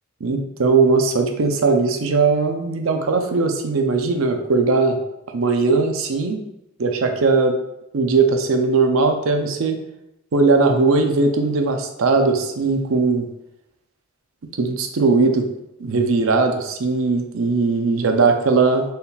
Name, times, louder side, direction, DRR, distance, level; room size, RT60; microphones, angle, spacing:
voice 1, 0.2-5.0 5.3-6.4 6.8-7.6 7.9-9.8 10.3-13.3 14.6-15.5 15.8-18.8, right 4 dB, 80° right, 5 dB, 0.5 m, -19 dB
4.1 x 3.5 x 2.3 m, 0.85 s
head